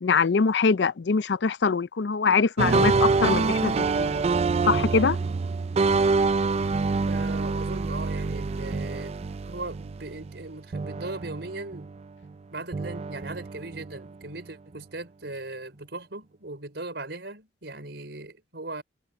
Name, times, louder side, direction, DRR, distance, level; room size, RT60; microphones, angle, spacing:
voice 1, 0.0-4.2 4.7-5.2, left 5 dB, 75° left, 0.5 m, -23 dB
sound 1, 2.6-10.5 10.7-12.3 12.7-14.3, right 4 dB, 35° right, 0.4 m, -26 dB
voice 2, 7.1-9.2 9.4-11.9 12.5-18.8, right 2 dB, 70° right, 5.4 m, -38 dB
head